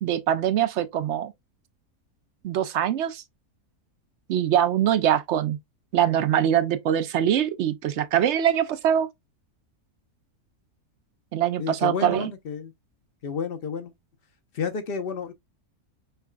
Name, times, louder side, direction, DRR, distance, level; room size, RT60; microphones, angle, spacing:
voice 1, 0.0-1.3 2.4-3.2 4.3-5.6 5.9-9.1 11.3-12.3, right 10 dB, 65° right, 0.7 m, -23 dB
voice 2, 11.6-12.7 13.2-13.9 14.5-15.3, left 6 dB, 45° left, 0.9 m, -31 dB
5.7 x 3.5 x 2.2 m
omnidirectional pair, 1.5 m